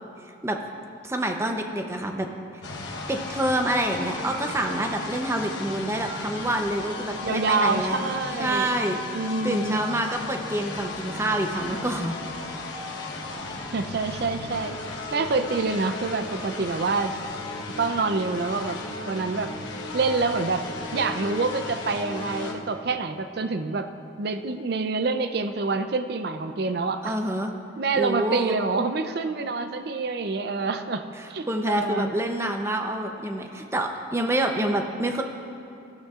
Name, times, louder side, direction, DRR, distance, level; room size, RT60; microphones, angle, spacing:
voice 1, 1.0-2.3 3.1-8.0 8.4-9.0 9.4-12.2 27.0-27.5 28.0-28.6 31.5-35.2, right 1 dB, 15° right, 3 dB, 0.6 m, -27 dB
sound 1, 2.6-22.5, left 2 dB, 70° left, 1.1 m, -35 dB
voice 2, 7.2-8.7 9.1-9.8 13.7-14.8 15.1-17.2 17.8-18.8 19.1-19.5 19.9-20.7 20.9-23.9 24.2-27.1 27.8-32.1, right 4 dB, 55° right, 8 dB, 0.5 m, -27 dB
17.0 x 12.5 x 2.4 m, 2.7 s
head